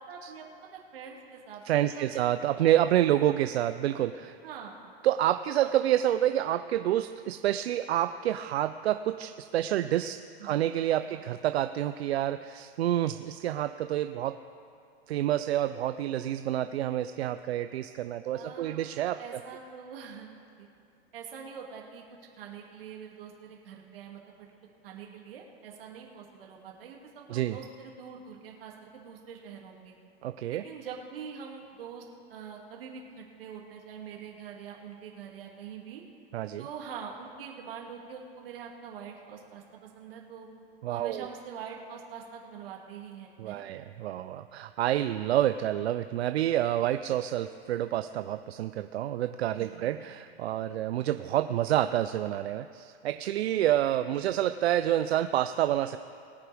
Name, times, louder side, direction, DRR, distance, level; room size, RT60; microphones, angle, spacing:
voice 1, 0.1-0.4 0.7-2.2 2.6-2.7 4.4-4.7 5.6-5.7 10.4-10.8 11.1-11.2 18.3-20.3 20.6-20.7 21.1-22.0 22.4-24.5 24.8-29.9 30.5-32.0 32.3-36.0 36.6-40.5 40.9-43.7 49.5-49.8, right 7 dB, 65° right, 0 dB, 2.5 m, -44 dB
voice 2, 1.7-4.4 5.0-14.3 15.1-19.2 27.3-27.6 30.2-30.6 36.3-36.6 40.8-41.3 43.4-56.0, right 12 dB, 85° right, 10 dB, 0.5 m, -28 dB
21.0 x 9.4 x 3.5 m, 2.4 s
supercardioid pair, 165°, 31 cm